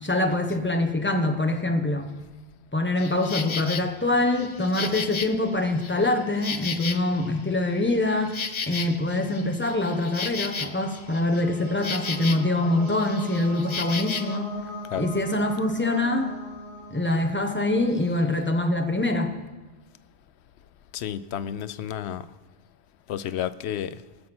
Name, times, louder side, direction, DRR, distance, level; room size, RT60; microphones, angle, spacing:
voice 1, 0.0-2.1 2.7-14.6 15.0-16.4 16.9-19.3, left 2 dB, 10° left, 5 dB, 1.1 m, -24 dB
Insect, 3.0-3.8 4.3-7.4 7.7-12.6 12.8-14.4, left 5 dB, 40° left, 0.5 m, -34 dB
sound 1, 10.3-18.0, equal, 70° right, 3.5 m, -40 dB
voice 2, 20.9-22.3 23.1-24.0, left 10 dB, 90° left, 14 dB, 0.9 m, -31 dB
19.0 x 7.3 x 6.1 m, 1.2 s
omnidirectional pair, 1.1 m